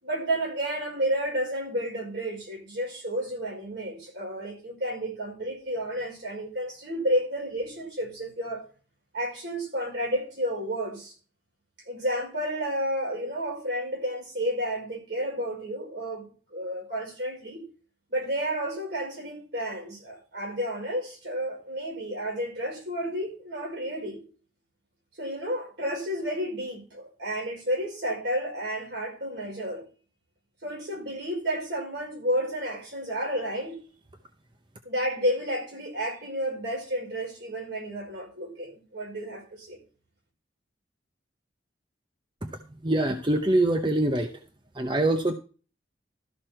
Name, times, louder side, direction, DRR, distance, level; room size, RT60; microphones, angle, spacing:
voice 1, 0.0-8.6 9.1-11.1 11.9-17.6 18.1-24.2 25.2-29.8 30.6-33.8 34.8-39.8, equal, 65° right, 5.2 m, -31 dB
voice 2, 42.4-44.3 44.7-45.3, right 1 dB, 25° right, 0.7 m, -24 dB
13.5 x 6.3 x 4.4 m
head